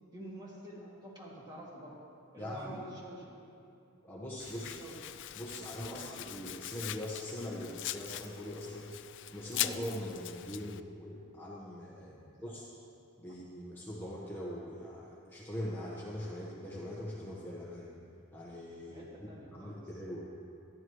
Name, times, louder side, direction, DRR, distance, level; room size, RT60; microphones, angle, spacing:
voice 1, 0.1-2.0 2.3-3.4 4.5-4.9 5.9-6.1 12.0-12.5 18.9-19.8, right 1 dB, 20° right, -5 dB, 2.6 m, -48 dB
voice 2, 2.4-2.8 4.0-4.7 5.4-8.9 9.3-12.6 13.2-17.9 18.3-19.0 19.5-20.2, left 1 dB, 10° left, -5 dB, 1.2 m, -42 dB
Domestic sounds home sounds, 4.4-10.8, left 13 dB, 55° left, 0.4 m, -41 dB
26.0 x 11.0 x 3.2 m, 2.6 s
head